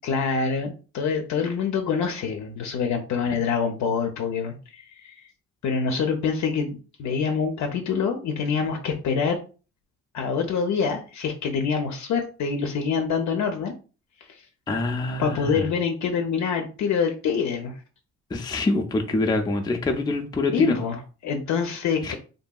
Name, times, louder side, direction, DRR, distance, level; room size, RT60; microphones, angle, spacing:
voice 1, 0.0-5.2 5.6-9.4 10.1-13.7 14.3-14.4 15.2-17.8 20.5-22.2, left 6 dB, 65° left, 4 dB, 0.5 m, -26 dB
voice 2, 14.7-15.7 18.3-20.8 22.0-22.1, left 2 dB, 15° left, 4 dB, 0.4 m, -25 dB
2.7 x 2.6 x 2.2 m, 0.35 s
cardioid pair, 90°, 30 cm